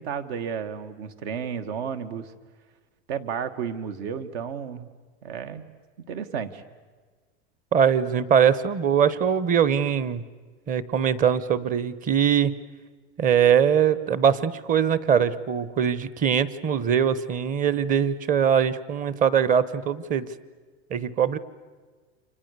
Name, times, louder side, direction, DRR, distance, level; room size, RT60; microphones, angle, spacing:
voice 1, 0.0-2.3 3.1-4.9 5.2-5.6 6.1-6.6, right 7 dB, 65° right, 9 dB, 2.2 m, -32 dB
voice 2, 7.7-10.2 10.7-12.6 13.2-20.3 20.9-21.4, right 8 dB, 25° right, 17 dB, 1.0 m, -22 dB
30.0 x 26.5 x 6.9 m, 1.4 s
supercardioid pair, 140°, 33 cm